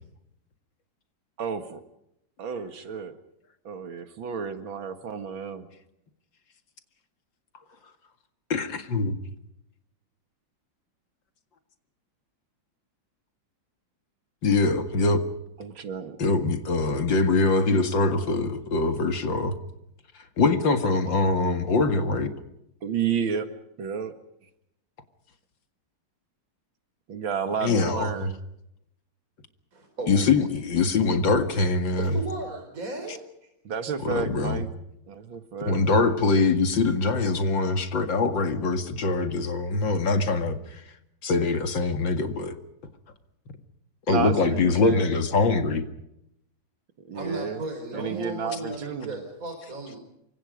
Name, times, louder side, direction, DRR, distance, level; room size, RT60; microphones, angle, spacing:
voice 1, 1.4-1.8 2.4-3.2 3.6-5.7 15.6-16.2 22.8-23.5 23.8-24.1 27.1-28.4 33.6-34.7 35.1-35.8 44.1-45.1 47.1-47.6 47.9-49.2, right 7 dB, 90° right, 9 dB, 2.6 m, -31 dB
voice 2, 8.5-9.2 14.4-15.3 16.2-19.6 20.4-22.3 27.6-28.3 30.1-32.2 33.1-33.2 34.0-34.6 35.7-40.8 41.2-42.5 44.1-45.8 48.5-48.6, left 3 dB, 70° left, 8 dB, 2.7 m, -23 dB
voice 3, 29.7-30.5 32.0-33.2 47.1-50.0, right 2 dB, 45° right, 3 dB, 4.9 m, -35 dB
28.0 x 25.0 x 5.2 m, 0.81 s
omnidirectional pair, 2.1 m